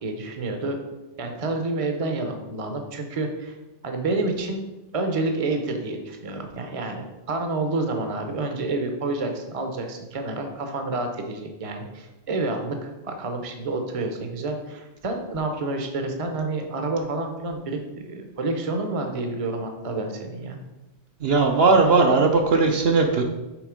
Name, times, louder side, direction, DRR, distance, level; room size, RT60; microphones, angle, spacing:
voice 1, 0.0-0.8 1.2-3.5 3.8-4.6 4.9-20.6, right 2 dB, 35° right, 4 dB, 0.8 m, -29 dB
voice 2, 21.2-23.2, right 3 dB, 65° right, 3 dB, 0.9 m, -18 dB
6.1 x 4.1 x 5.1 m, 1.0 s
omnidirectional pair, 1.2 m